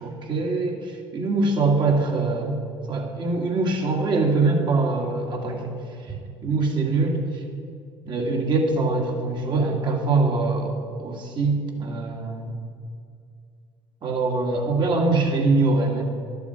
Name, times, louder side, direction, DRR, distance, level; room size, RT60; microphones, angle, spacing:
voice 1, 0.0-2.6 2.9-5.8 6.1-7.2 8.1-12.6 14.0-16.0, right 3 dB, 45° right, 1 dB, 1.9 m, -23 dB
11.0 x 6.9 x 5.6 m, 2.3 s
supercardioid pair, 80°, 11 cm